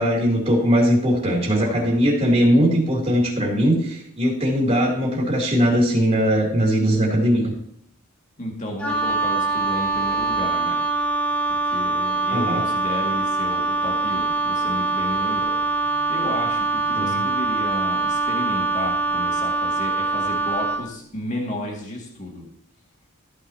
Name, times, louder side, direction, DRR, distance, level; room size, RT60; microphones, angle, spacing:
voice 1, 0.0-7.5 12.3-12.6 16.9-17.2, equal, 30° right, -3 dB, 3.1 m, -20 dB
voice 2, 1.6-2.0 8.4-10.8 11.5-22.5, left 1 dB, 35° left, 0 dB, 2.1 m, -33 dB
Wind instrument woodwind instrument, 8.8-20.9, right 3 dB, 5° left, 0.8 m, -23 dB
14.0 x 9.1 x 2.9 m, 0.68 s
head